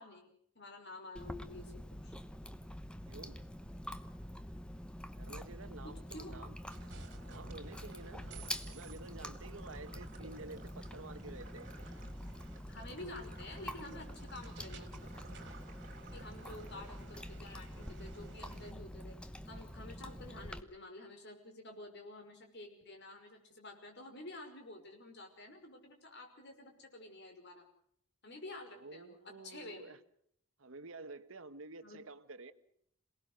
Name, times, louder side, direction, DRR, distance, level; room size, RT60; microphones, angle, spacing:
voice 1, 0.0-1.7 2.0-2.1 5.8-6.3 8.3-8.6 12.7-15.3 16.1-27.6 28.2-29.9 31.8-32.0, left 2 dB, 50° left, 4 dB, 5.6 m, -50 dB
Chewing mastication, 1.2-20.6, left 1 dB, 5° left, 1.0 m, -46 dB
voice 2, 3.1-3.5 5.2-6.6 7.2-8.3 8.7-11.7 16.4-16.7 28.7-30.0 30.6-32.5, right 3 dB, 70° right, 12 dB, 1.2 m, -50 dB
sound 1, 6.7-17.4, right 4 dB, 40° right, 2.7 m, -59 dB
sound 2, 6.7-18.7, right 3 dB, 55° right, 2.9 m, -57 dB
27.5 x 19.0 x 6.5 m, 0.69 s
head